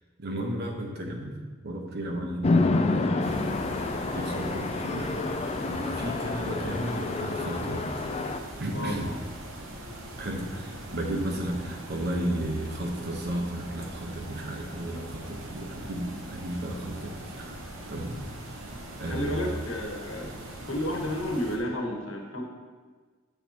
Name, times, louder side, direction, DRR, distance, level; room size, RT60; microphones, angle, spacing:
voice 1, 0.2-1.4 1.6-3.6 3.9-5.2 5.7-8.0 8.6-9.1 10.2-17.6 17.9-18.7 19.0-19.6, right 1 dB, 55° right, 2 dB, 1.1 m, -34 dB
Chatter / Traffic noise roadway noise / Train, 2.4-8.4, left 3 dB, 30° left, 0.4 m, -28 dB
sound 1, 3.2-21.6, right 1 dB, 85° right, 1.1 m, -42 dB
voice 2, 19.1-20.4 20.7-22.4, left 1 dB, 80° left, 0 dB, 1.3 m, -31 dB
8.5 x 6.8 x 2.9 m, 1.4 s
head